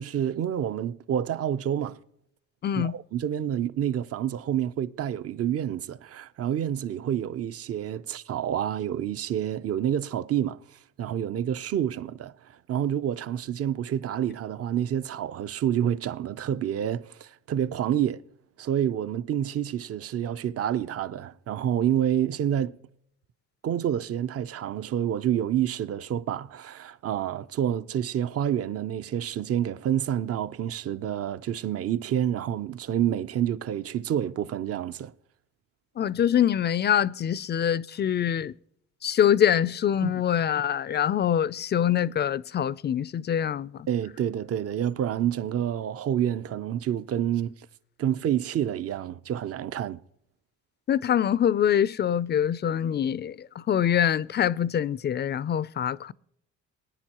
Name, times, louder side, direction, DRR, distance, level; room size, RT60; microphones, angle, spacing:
voice 1, 0.0-2.0 2.8-10.6 11.0-18.2 18.6-22.8 23.6-35.1 40.0-40.2 43.9-47.5 48.0-50.0, right 10 dB, 50° right, 0.6 m, -28 dB
voice 2, 2.6-3.0 36.0-38.5 39.0-43.9 50.9-56.1, left 9 dB, 35° left, 0.4 m, -24 dB
19.5 x 9.9 x 2.9 m
cardioid pair, 90°, 30 cm